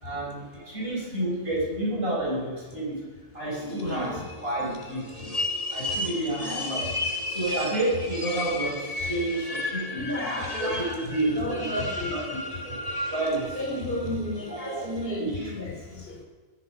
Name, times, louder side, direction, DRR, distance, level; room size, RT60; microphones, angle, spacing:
voice 1, 0.0-3.0 3.3-5.1 5.7-6.9 7.3-10.1 10.6-12.3 12.6-12.8 13.1-13.6 13.8-14.0 14.5-14.9 15.2-15.5, right 1 dB, 45° right, -6 dB, 6.3 m, -30 dB
sound 1, 3.5-15.1, left 2 dB, 25° left, 1.8 m, -34 dB
voice 2, 3.6-4.2 6.4-6.7 9.9-10.9 11.4-12.1 13.5-16.2, left 1 dB, 40° left, 0 dB, 3.7 m, -32 dB
16.5 x 13.5 x 5.3 m, 1.4 s
omnidirectional pair, 1.4 m